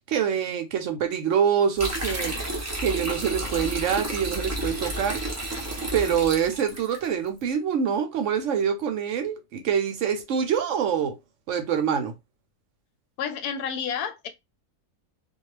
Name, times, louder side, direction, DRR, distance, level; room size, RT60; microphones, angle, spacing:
voice 1, 0.1-2.3 2.8-5.2 5.9-11.2 11.5-12.1, right 8 dB, 70° right, 0.8 m, -25 dB
sound 1, 1.8-7.0, right 1 dB, 20° right, 0.4 m, -31 dB
voice 2, 13.2-14.3, left 7 dB, 85° left, 1.1 m, -30 dB
2.3 x 2.3 x 3.1 m
omnidirectional pair, 1.5 m